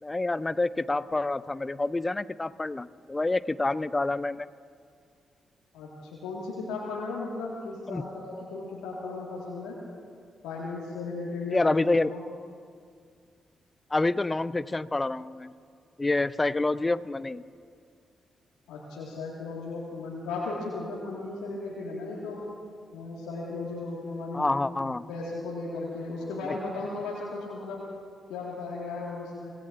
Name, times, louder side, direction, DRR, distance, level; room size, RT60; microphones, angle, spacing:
voice 1, 0.0-4.5 7.9-8.0 11.5-12.1 13.9-15.5 16.0-17.4 24.3-25.0 26.4-26.5, left 2 dB, 25° left, 16 dB, 0.5 m, -27 dB
voice 2, 6.2-9.8 10.4-12.2 18.7-22.4 22.9-24.5 24.8-27.8 28.3-29.5, left 3 dB, 80° left, -6 dB, 1.9 m, -36 dB
25.5 x 17.0 x 2.6 m, 2.2 s
hypercardioid pair, 40°, 0 cm